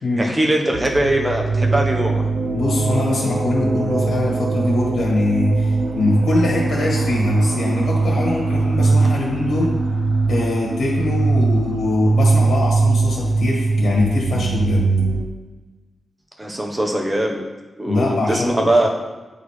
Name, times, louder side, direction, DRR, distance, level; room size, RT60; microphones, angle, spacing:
voice 1, 0.2-2.2 16.4-17.4 17.8-18.9, right 1 dB, 15° right, 1 dB, 1.0 m, -21 dB
sound 1, 0.7-15.3, right 3 dB, 75° right, 0.6 m, -20 dB
voice 2, 2.5-9.7 10.3-14.9 17.9-18.7, left 2 dB, 80° left, -3 dB, 1.9 m, -22 dB
9.2 x 4.1 x 3.2 m, 1.2 s
wide cardioid pair, 105°, 0 cm